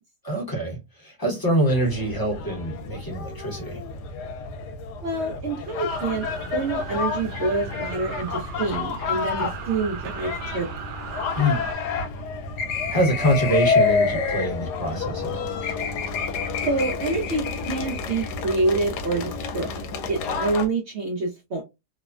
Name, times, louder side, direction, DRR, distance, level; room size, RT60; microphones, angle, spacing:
voice 1, 0.2-3.8 9.4-9.5 11.4-11.6 12.9-15.4, equal, 15° left, 0.8 m, -25 dB
sound 1, 1.7-20.7, left 5 dB, 80° left, 1.1 m, -29 dB
voice 2, 5.0-6.3 6.5-10.8 16.6-21.6, right 3 dB, 70° right, 0.6 m, -27 dB
sound 2, 5.9-11.7, right 5 dB, 85° right, 1.2 m, -37 dB
3.1 x 2.1 x 2.3 m
omnidirectional pair, 1.8 m